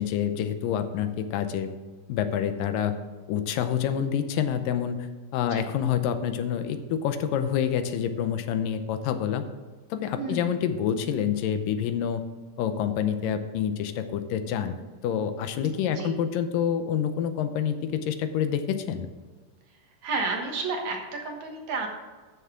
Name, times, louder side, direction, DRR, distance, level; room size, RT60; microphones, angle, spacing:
voice 1, 0.0-1.7 2.1-2.9 3.3-5.1 5.3-9.4 9.9-12.2 12.6-14.8 15.0-19.1, left 8 dB, 85° left, 9 dB, 2.4 m, -27 dB
voice 2, 10.2-10.5 15.9-16.2 20.0-21.9, right 3 dB, 60° right, 2 dB, 2.5 m, -31 dB
13.5 x 6.8 x 3.7 m, 1.4 s
omnidirectional pair, 3.9 m